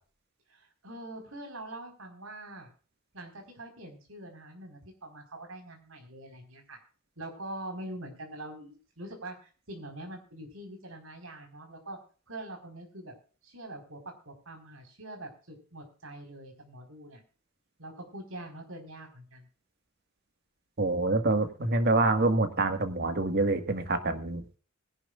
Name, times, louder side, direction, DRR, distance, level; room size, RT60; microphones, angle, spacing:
voice 1, 0.5-2.7 3.1-6.8 7.2-12.0 12.3-13.1 13.4-14.0 14.2-17.2 17.8-19.4, right 1 dB, 85° right, 4 dB, 4.7 m, -44 dB
voice 2, 20.8-24.4, right 2 dB, 50° right, 7 dB, 1.7 m, -26 dB
21.5 x 11.0 x 2.5 m, 0.38 s
head